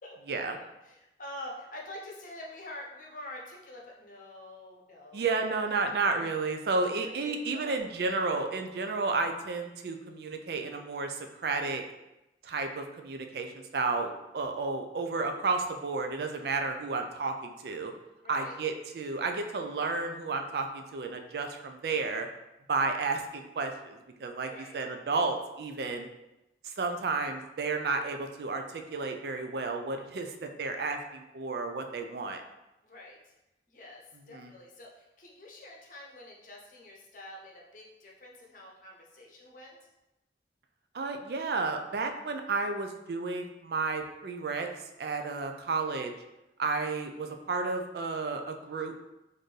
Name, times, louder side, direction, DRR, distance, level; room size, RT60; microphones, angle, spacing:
voice 1, 0.0-5.6 6.8-7.7 18.2-18.6 24.5-24.7 32.8-33.3 33.7-39.8, left 1 dB, 45° left, -1 dB, 0.7 m, -47 dB
voice 2, 5.1-11.8 12.4-17.9 18.3-22.3 22.7-26.1 26.6-32.4 34.3-34.5 40.9-44.7 45.0-46.1 46.6-48.9, right 3 dB, 60° right, 5 dB, 0.4 m, -32 dB
4.2 x 2.6 x 3.2 m, 0.94 s
head